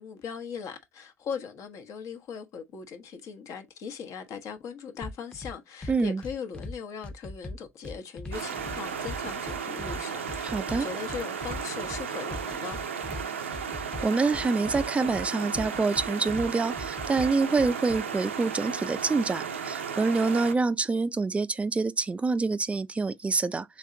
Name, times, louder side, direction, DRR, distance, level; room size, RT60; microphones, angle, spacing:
voice 1, 0.0-12.8, left 6 dB, 55° left, 1.0 m, -39 dB
sound 1, 5.0-5.5 5.8-6.7 7.0-8.8 9.1-10.0 10.3-12.0 12.3-13.2 13.5-15.3 15.6-16.5 16.8-18.0, left 2 dB, 15° left, 0.8 m, -39 dB
voice 2, 5.9-6.2 10.4-10.9 14.0-23.8, right 4 dB, 20° right, 0.4 m, -26 dB
sound 2, 8.3-20.5, right 7 dB, 90° right, 0.5 m, -34 dB
3.5 x 3.3 x 3.8 m
hypercardioid pair, 60°, 6 cm